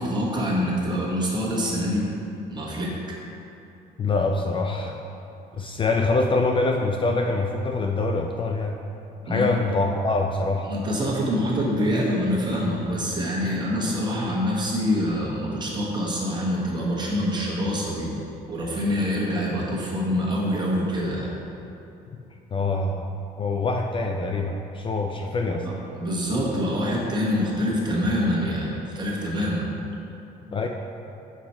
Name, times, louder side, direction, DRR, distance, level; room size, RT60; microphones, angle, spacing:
voice 1, 0.0-2.1 2.5-2.9 9.3-9.7 10.7-18.1 18.5-21.3 25.6-29.7, equal, 25° right, -4 dB, 1.3 m, -25 dB
voice 2, 4.0-5.0 5.5-8.8 9.3-10.7 13.4-13.5 13.9-14.1 22.5-23.1 23.4-25.7 30.5-30.7, left 3 dB, 30° left, 2 dB, 0.3 m, -25 dB
6.1 x 4.2 x 4.3 m, 2.8 s
cardioid pair, 110°, 17 cm